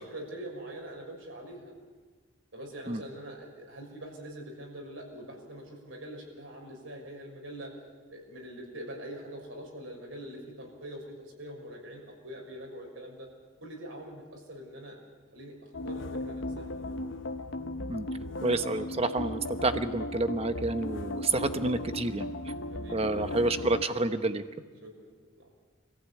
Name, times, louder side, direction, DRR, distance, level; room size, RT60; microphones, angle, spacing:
voice 1, 0.0-1.6 2.5-7.7 8.1-13.3 13.6-15.0 15.3-15.5 15.8-16.9 22.7-23.6 24.8-25.5, right 1 dB, 75° right, 0 dB, 6.3 m, -44 dB
sound 1, 15.7-23.8, left 1 dB, 65° left, 0.9 m, -37 dB
voice 2, 18.4-22.3 22.9-24.4, right 2 dB, 30° right, 9 dB, 1.0 m, -29 dB
25.5 x 15.5 x 8.5 m, 1.4 s
head